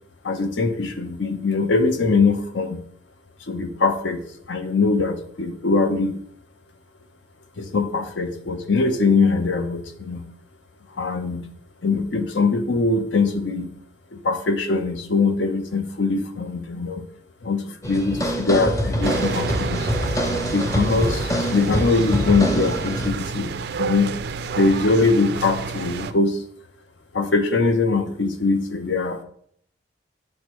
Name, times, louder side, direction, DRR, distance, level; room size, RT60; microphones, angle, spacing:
voice 1, 0.2-2.8 3.5-4.2 4.5-6.2 7.6-10.3 11.0-11.5 11.8-13.7 14.1-17.0 17.4-19.9 20.5-23.5 23.8-24.1 24.6-26.4 27.1-29.2, left 3 dB, 80° left, 8 dB, 0.7 m, -22 dB
sound 1, 17.8-23.1, equal, 20° left, 0.6 m, -25 dB
sound 2, 19.0-26.1, right 5 dB, 60° right, 0.3 m, -29 dB
6.4 x 5.3 x 3.1 m, 0.66 s
head